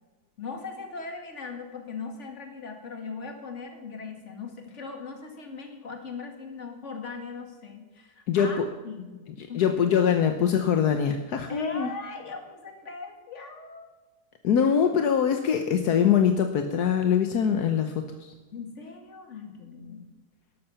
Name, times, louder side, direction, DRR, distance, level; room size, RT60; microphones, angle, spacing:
voice 1, 0.4-9.2 9.5-9.7 11.5-13.9 18.5-20.1, left 4 dB, 45° left, 4 dB, 2.3 m, -39 dB
voice 2, 8.3-8.7 9.4-11.9 14.4-18.3, left 7 dB, 75° left, 6 dB, 1.4 m, -23 dB
13.0 x 12.0 x 5.7 m, 1.2 s
omnidirectional pair, 1.7 m